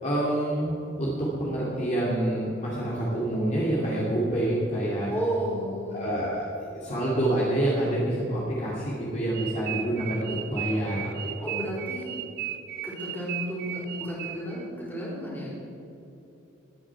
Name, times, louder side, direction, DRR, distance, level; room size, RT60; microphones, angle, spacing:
voice 1, 0.0-5.1 5.9-11.1 11.4-11.5, right 1 dB, 35° left, -6 dB, 2.5 m, -27 dB
voice 2, 5.1-6.1 11.4-12.1 12.8-15.6, equal, 10° left, -6 dB, 4.0 m, -32 dB
sound 1, 9.3-14.6, right 12 dB, 50° right, 0.5 m, -36 dB
21.5 x 9.1 x 4.8 m, 2.9 s
head